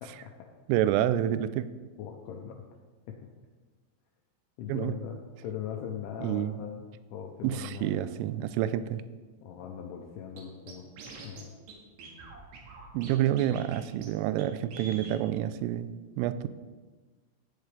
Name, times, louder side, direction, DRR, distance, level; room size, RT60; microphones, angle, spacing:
voice 1, 0.0-0.5 1.5-1.6 2.0-2.6 3.1-3.2 4.6-8.2 9.4-10.9 11.2-11.4, left 8 dB, 80° left, 1 dB, 2.8 m, -40 dB
voice 2, 0.7-1.7 4.7-5.0 6.2-6.6 7.4-9.0 12.9-16.5, right 12 dB, 85° right, 14 dB, 3.0 m, -28 dB
Scratching (performance technique), 10.4-10.5 10.7-11.4 11.7-11.8 12.0-13.1 13.4-13.8 14.0-14.1 14.4-14.5 14.7-15.2, right 4 dB, 65° right, 3.3 m, -45 dB
17.0 x 8.1 x 3.3 m, 1.3 s
omnidirectional pair, 6.0 m